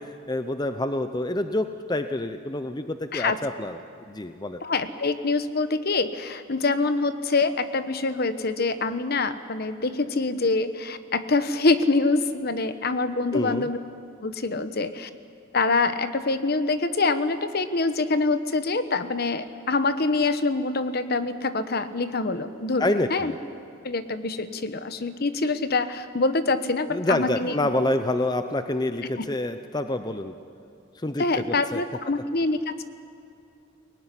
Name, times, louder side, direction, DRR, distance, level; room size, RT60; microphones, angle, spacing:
voice 1, 0.0-3.8 4.1-4.6 13.3-13.7 22.8-23.4 26.9-30.3 31.0-31.8, left 1 dB, 20° left, 9 dB, 0.6 m, -27 dB
voice 2, 4.6-13.8 14.2-15.1 15.5-23.3 23.8-27.5 29.2-29.3 31.2-32.8, left 3 dB, 50° left, 11 dB, 1.0 m, -25 dB
22.0 x 18.5 x 9.9 m, 2.5 s
head